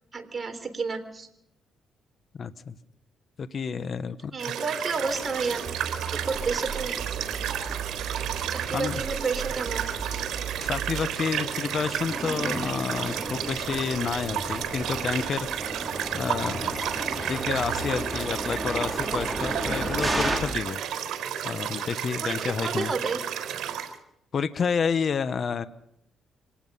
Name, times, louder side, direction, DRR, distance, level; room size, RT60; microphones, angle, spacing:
voice 1, 0.1-1.3 4.3-5.6 6.1-7.0 8.5-9.9 22.2-23.2, right 4 dB, 35° right, 6 dB, 3.7 m, -31 dB
voice 2, 2.4-2.7 3.4-4.3 8.7-9.0 10.6-15.5 16.1-16.8 17.2-20.8 21.4-22.9 24.3-25.7, left 6 dB, 50° left, 13 dB, 1.0 m, -29 dB
sound 1, 4.4-23.9, right 9 dB, 75° right, 4.0 m, -32 dB
sound 2, 5.0-20.4, right 1 dB, 15° right, 4.6 m, -35 dB
sound 3, 5.7-11.1, right 9 dB, 55° right, 1.1 m, -36 dB
26.5 x 18.5 x 5.6 m, 0.77 s
cardioid pair, 90°, 0 cm